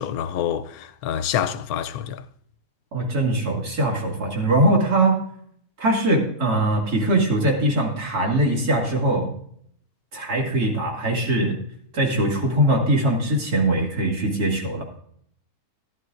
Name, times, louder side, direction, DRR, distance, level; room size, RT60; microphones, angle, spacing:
voice 1, 0.0-2.2, left 9 dB, 80° left, 1.1 m, -27 dB
voice 2, 2.9-5.2 5.8-9.3 10.1-11.6 11.9-14.9, right 1 dB, 90° right, 2.8 m, -21 dB
14.0 x 11.0 x 2.5 m
omnidirectional pair, 1.6 m